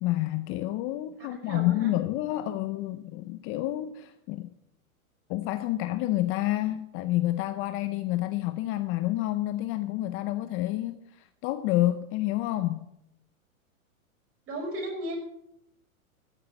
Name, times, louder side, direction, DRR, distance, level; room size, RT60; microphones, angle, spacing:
voice 1, 0.0-4.5 5.3-12.9, left 15 dB, 30° left, 0.6 m, -29 dB
voice 2, 1.2-1.9 2.3-2.6 14.5-15.2, right 1 dB, 30° right, 5.3 m, -36 dB
13.0 x 7.8 x 8.2 m
hypercardioid pair, 125°, 43 cm